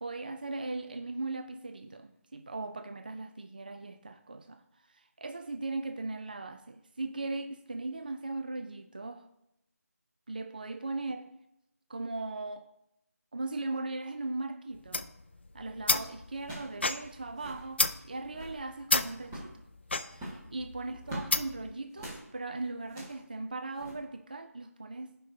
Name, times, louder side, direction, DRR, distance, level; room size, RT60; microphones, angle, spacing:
voice 1, 0.0-4.6 4.9-9.3 10.3-11.4 11.9-12.7 13.3-15.1 15.5-19.6 20.0-25.2, right 2 dB, 30° right, 0.4 m, -38 dB
sound 1, 14.7-21.7, left 3 dB, 40° left, 0.4 m, -32 dB
sound 2, 15.4-15.7 16.4-16.8 17.1-17.2 17.3-17.7 18.2-18.6 19.2-19.6 20.1-21.3 21.9-22.2 22.8-23.2 23.8-23.9, right 1 dB, 10° right, 1.4 m, -43 dB
15.5 x 5.3 x 2.7 m
figure-of-eight pair, 170°, 9 cm